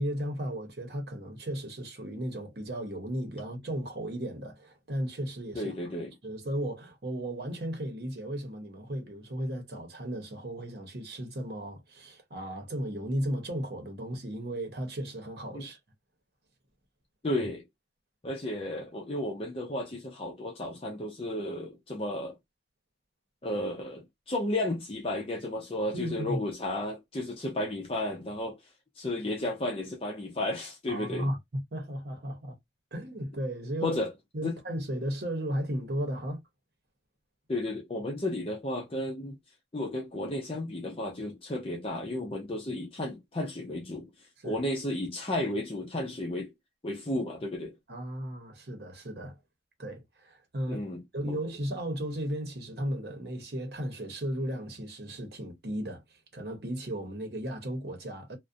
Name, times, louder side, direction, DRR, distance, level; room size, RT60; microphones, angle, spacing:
voice 1, 0.0-5.7 6.2-15.8 25.9-26.4 30.9-32.6 32.9-34.0 34.3-36.4 44.4-44.6 47.9-49.4 49.8-50.8 51.1-56.0 56.3-58.4, right 1 dB, 70° right, 0.8 m, -35 dB
voice 2, 5.5-6.1 15.5-15.7 17.2-17.6 18.2-22.4 23.4-28.6 29.0-31.3 33.8-34.1 34.4-34.5 37.5-39.4 39.7-44.1 44.4-46.5 46.8-47.8 50.7-51.0 51.3-51.4, left 1 dB, 30° left, 0.5 m, -33 dB
2.5 x 2.1 x 2.5 m
head